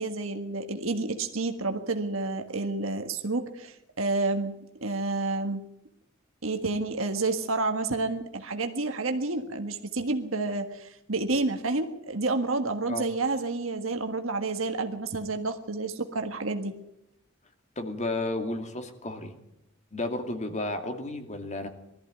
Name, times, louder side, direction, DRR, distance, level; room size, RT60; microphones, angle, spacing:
voice 1, 0.0-5.6 6.4-16.7, right 3 dB, 75° right, 6 dB, 1.6 m, -29 dB
voice 2, 17.8-19.3 19.9-21.7, left 2 dB, 35° left, 6 dB, 2.5 m, -32 dB
20.0 x 14.0 x 9.3 m, 0.79 s
head